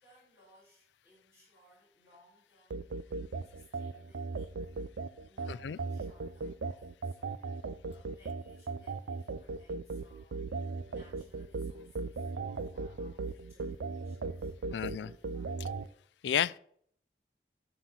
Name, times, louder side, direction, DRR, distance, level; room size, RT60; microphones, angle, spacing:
voice 1, 0.0-2.9 3.4-4.6 5.3-15.7, left 1 dB, 15° right, 3.7 m, -64 dB
sound 1, 2.7-15.9, right 4 dB, 85° right, 0.5 m, -38 dB
voice 2, 5.5-5.8 14.7-15.1 15.6-15.7 16.2-16.6, left 9 dB, 85° left, 0.4 m, -32 dB
11.5 x 4.3 x 5.9 m
head